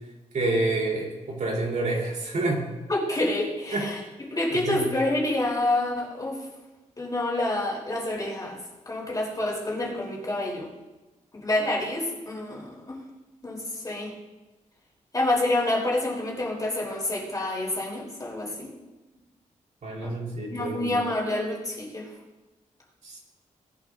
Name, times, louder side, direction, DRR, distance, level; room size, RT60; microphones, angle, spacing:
voice 1, 0.3-2.7 3.7-3.9 4.5-4.9 19.8-21.0 23.0-23.2, right 2 dB, 70° right, -2 dB, 3.8 m, -28 dB
voice 2, 2.9-6.5 7.0-8.6 8.9-10.7 11.4-13.0 13.4-14.1 15.1-18.7 20.0-20.1 20.5-22.1, left 1 dB, 25° left, -3 dB, 3.7 m, -28 dB
18.5 x 11.0 x 2.7 m, 1.1 s
wide cardioid pair, 105°, 14 cm